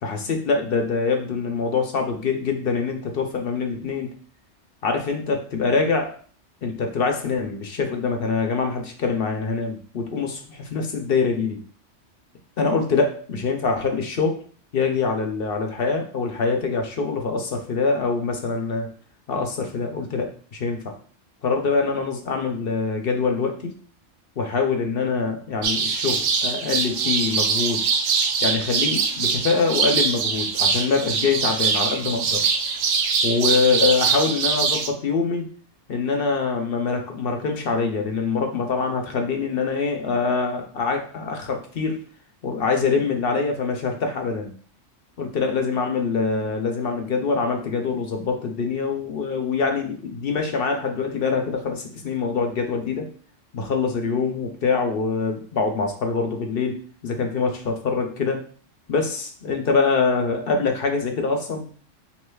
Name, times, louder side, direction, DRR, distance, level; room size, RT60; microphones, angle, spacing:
voice 1, 0.0-4.1 4.8-6.2 6.6-11.6 12.6-14.4 14.7-18.9 19.3-21.0 21.4-23.7 24.4-27.8 28.4-32.5 33.2-35.5 35.9-42.0 42.4-44.5 45.2-53.1 53.5-58.4 58.9-61.7, left 4 dB, 55° left, 3 dB, 0.8 m, -24 dB
sound 1, 25.6-34.9, right 5 dB, 65° right, 0.7 m, -23 dB
6.4 x 2.9 x 2.3 m, 0.43 s
omnidirectional pair, 1.3 m